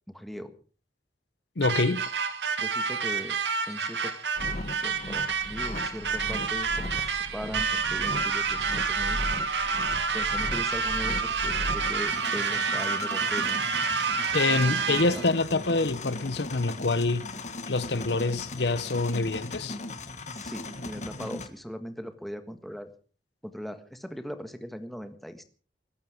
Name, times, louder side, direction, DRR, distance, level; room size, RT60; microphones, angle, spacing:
voice 1, 0.1-0.5 2.6-3.4 3.7-4.1 4.8-9.2 10.1-13.6 14.9-15.3 20.3-22.9 23.4-25.4, equal, ahead, 1.5 m, -39 dB
voice 2, 1.6-2.0 14.3-17.3 17.7-19.8, left 3 dB, 75° left, 0.9 m, -26 dB
sound 1, 1.6-15.3, right 5 dB, 85° right, 2.2 m, -29 dB
sound 2, 4.4-21.5, left 1 dB, 40° left, 1.7 m, -38 dB
22.0 x 12.0 x 5.0 m
head